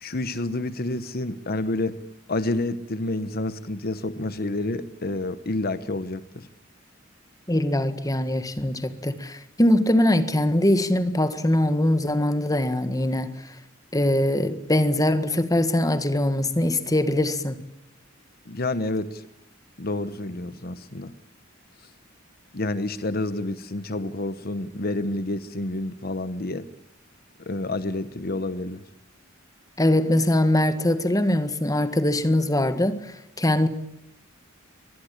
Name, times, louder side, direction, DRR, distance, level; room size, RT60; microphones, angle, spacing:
voice 1, 0.0-2.0 2.3-6.5 18.5-19.2 19.8-21.1 22.5-26.7 27.5-28.8, left 2 dB, 50° left, 1.0 m, -29 dB
voice 2, 7.5-13.5 13.9-17.6 29.8-33.7, left 1 dB, 20° left, 1.7 m, -22 dB
24.0 x 20.0 x 8.8 m
head